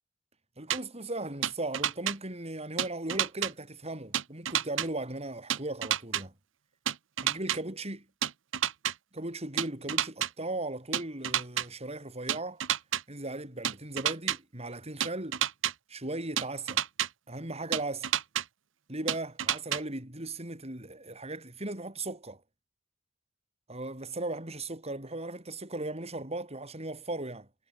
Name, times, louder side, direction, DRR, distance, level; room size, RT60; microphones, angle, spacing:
voice 1, 0.6-6.3 7.2-8.0 9.1-12.6 13.1-15.4 15.9-16.8 17.3-18.1 18.9-22.4 23.7-27.5, right 2 dB, 35° right, 6.3 m, -37 dB
sound 1, 0.7-0.8 1.4-2.1 2.8-3.5 4.1-4.9 5.5-6.2 6.9-7.6 8.2-8.9 9.6-10.3 10.9-11.6 12.3-13.0 13.6-14.4 15.0-15.7 16.4-17.1 17.7-18.4 19.1-19.8, right 10 dB, 90° right, 1.1 m, -29 dB
head